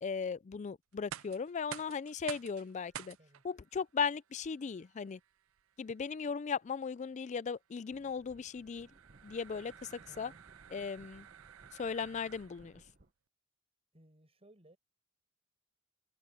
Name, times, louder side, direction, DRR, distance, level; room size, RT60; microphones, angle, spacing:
voice 1, 0.0-3.2 3.4-5.2 5.8-8.9 9.2-10.3 10.7-11.3 11.7-12.8, left 6 dB, 35° left, 0.3 m, -37 dB
sound 1, 0.9-12.8, right 10 dB, 85° right, 0.5 m, -52 dB
sound 2, 7.9-13.1, right 2 dB, 45° right, 1.2 m, -62 dB
voice 2, 10.1-10.4 13.9-14.8, right 1 dB, 30° right, 7.5 m, -62 dB
head